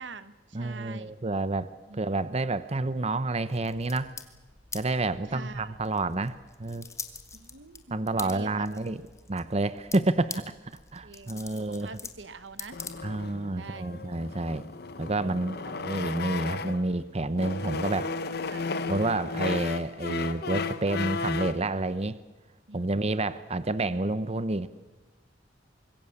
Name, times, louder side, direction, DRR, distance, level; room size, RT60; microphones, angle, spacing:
voice 1, 0.0-1.1 1.9-2.0 5.3-5.8 7.3-8.7 11.0-12.8 13.6-14.0 18.5-18.7 22.7-23.1, right 3 dB, 80° right, 13 dB, 1.3 m, -45 dB
voice 2, 0.5-4.1 4.7-6.8 7.9-9.0 9.3-10.5 10.9-11.9 13.0-14.7 15.0-18.1 18.9-22.2 22.7-24.7, right 2 dB, 35° right, 14 dB, 0.8 m, -29 dB
sound 1, 3.5-13.4, left 5 dB, 15° left, 1.8 m, -45 dB
sound 2, 12.7-16.9 17.3-21.7, left 4 dB, 60° left, 1.1 m, -34 dB
25.5 x 22.0 x 7.2 m, 1.2 s
head